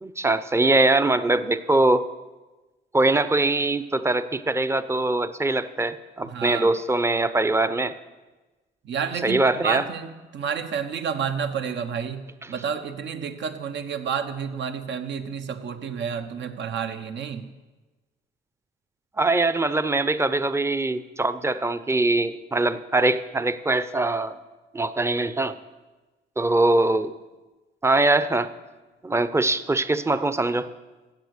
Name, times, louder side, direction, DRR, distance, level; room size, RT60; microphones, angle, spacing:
voice 1, 0.0-2.1 2.9-7.9 9.2-9.8 19.2-24.4 24.7-25.6 26.4-27.1 27.8-28.5 29.0-30.7, right 2 dB, 15° right, 13 dB, 0.7 m, -22 dB
voice 2, 6.2-6.7 8.8-12.2 12.5-17.5, right 7 dB, 65° right, 8 dB, 1.1 m, -30 dB
15.0 x 7.9 x 6.6 m, 1.2 s
cardioid pair, 90°, 20 cm